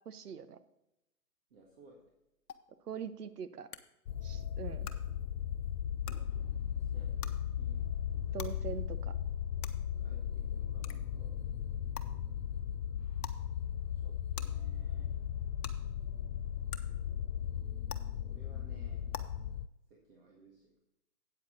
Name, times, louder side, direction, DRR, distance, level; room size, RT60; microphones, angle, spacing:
voice 1, 0.1-0.6 2.9-3.7 4.2-4.9 8.3-9.1, right 7 dB, 75° right, 12 dB, 1.0 m, -42 dB
voice 2, 1.5-2.1 6.8-7.8 8.1-8.6 10.0-11.4 13.9-15.2 18.2-19.1 19.9-20.8, right 2 dB, 35° right, -2 dB, 1.8 m, -60 dB
sound 1, 2.5-2.6 3.7-3.8 4.8-4.9 6.0-6.1 7.2-7.3 8.4-8.5 9.6-9.7 10.8-10.9 11.9-12.0 13.2-13.4 14.3-14.4 15.6-15.7 16.7-16.8 17.9-18.0 19.1-19.2, left 9 dB, 70° left, 1.0 m, -42 dB
sound 2, 4.1-19.7, left 9 dB, 85° left, 0.6 m, -37 dB
8.9 x 8.5 x 4.0 m, 0.88 s
hypercardioid pair, 160°, 47 cm